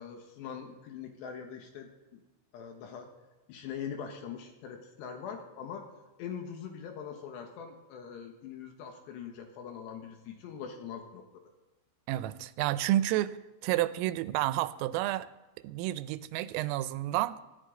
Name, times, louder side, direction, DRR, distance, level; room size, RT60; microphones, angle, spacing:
voice 1, 0.0-2.2 2.5-3.1 3.5-5.9 6.2-11.2, left 7 dB, 70° left, 4 dB, 3.1 m, -42 dB
voice 2, 12.1-13.4 13.6-15.3 15.6-17.4, right 14 dB, 90° right, 14 dB, 3.2 m, -30 dB
18.5 x 14.0 x 3.8 m, 1.1 s
omnidirectional pair, 5.8 m